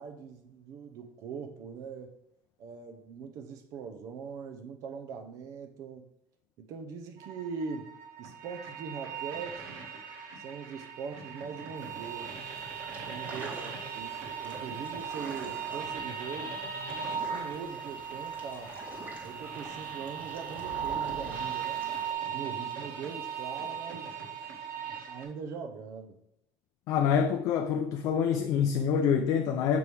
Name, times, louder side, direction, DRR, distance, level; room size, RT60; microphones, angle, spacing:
voice 1, 0.0-2.2 2.6-6.0 6.6-7.9 8.2-9.8 10.4-12.4 13.0-16.6 17.1-18.7 19.2-22.0 22.3-24.1 25.1-26.2, right 5 dB, 50° right, 0.6 m, -41 dB
sound 1, 7.2-25.2, right 7 dB, 65° right, 1.6 m, -38 dB
sound 2, 11.8-22.1, right 3 dB, 25° right, 1.3 m, -48 dB
voice 2, 26.9-29.8, left 7 dB, 50° left, 0.4 m, -26 dB
6.9 x 4.6 x 3.3 m
cardioid pair, 175°, 7 cm